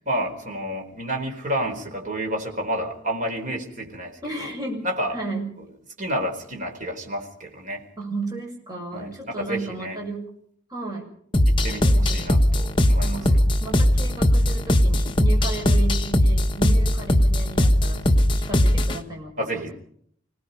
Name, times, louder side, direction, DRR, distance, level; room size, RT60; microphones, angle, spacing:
voice 1, 0.1-4.5 4.8-5.2 6.0-7.8 8.9-10.0 11.5-13.3 19.4-19.7, right 1 dB, 40° right, 2 dB, 4.3 m, -30 dB
voice 2, 4.2-4.9 5.1-5.5 8.0-10.2 10.7-11.1 11.8-12.3 13.0-19.7, right 2 dB, 20° right, -1 dB, 6.9 m, -34 dB
sound 1, 11.3-19.0, left 1 dB, 25° left, 1.3 m, -19 dB
26.5 x 18.5 x 5.5 m, 0.65 s
head